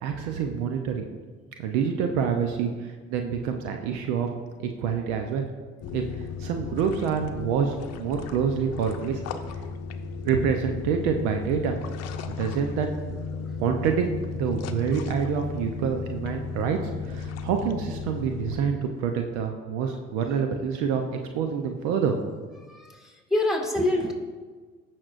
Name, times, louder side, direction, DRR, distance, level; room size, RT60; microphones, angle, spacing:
voice 1, 0.0-1.1 1.6-4.3 4.6-5.5 5.9-6.0 6.4-9.2 10.3-11.8 12.3-12.9 13.6-14.0 14.3-16.8 17.0-21.0 21.3-22.2, right 7 dB, 65° right, 5 dB, 0.8 m, -27 dB
sound 1, 5.8-18.6, left 5 dB, 50° left, 0.8 m, -35 dB
voice 2, 22.7-24.1, left 1 dB, ahead, -1 dB, 2.3 m, -26 dB
16.0 x 6.2 x 2.6 m, 1.5 s
hypercardioid pair, 65°, 33 cm